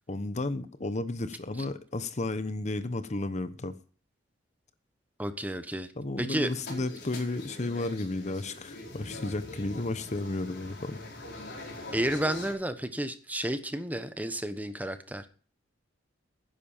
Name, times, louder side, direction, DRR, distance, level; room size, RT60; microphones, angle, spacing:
voice 1, 0.1-3.8 6.0-11.0, left 2 dB, 35° left, 0.9 m, -33 dB
voice 2, 5.2-5.9 6.2-6.5 11.9-15.3, right 1 dB, 10° right, 1.1 m, -31 dB
sound 1, 6.4-12.5, left 2 dB, 60° left, 4.8 m, -43 dB
12.0 x 10.5 x 5.6 m
head